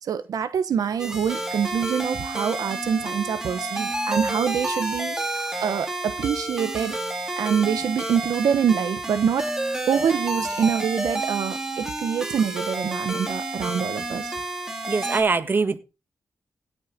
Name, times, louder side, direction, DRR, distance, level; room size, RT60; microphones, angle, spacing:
voice 1, 0.0-7.0 7.4-9.5 9.9-14.3, right 7 dB, 75° right, 11 dB, 1.1 m, -25 dB
sound 1, 1.0-15.2, right 2 dB, 10° right, 3.0 m, -30 dB
voice 2, 14.9-15.8, right 4 dB, 35° right, 9 dB, 1.4 m, -22 dB
17.0 x 6.6 x 5.2 m, 0.30 s
wide cardioid pair, 125°, 6 cm